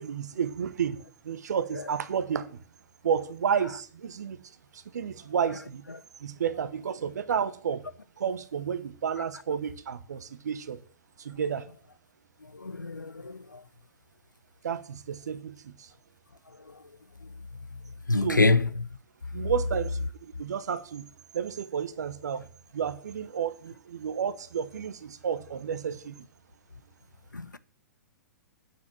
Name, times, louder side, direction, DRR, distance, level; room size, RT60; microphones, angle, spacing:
voice 1, 0.0-2.6 3.0-4.4 4.7-5.8 6.2-7.8 8.2-10.8 11.2-11.7 14.6-15.9 18.2-18.5 19.3-21.1 21.3-22.5 22.7-26.1, right 7 dB, 65° right, 1.1 m, -31 dB
voice 2, 12.5-13.6 18.1-18.9 27.3-27.6, left 3 dB, 90° left, 0.7 m, -26 dB
9.4 x 6.0 x 7.4 m
figure-of-eight pair, 110°, 10 cm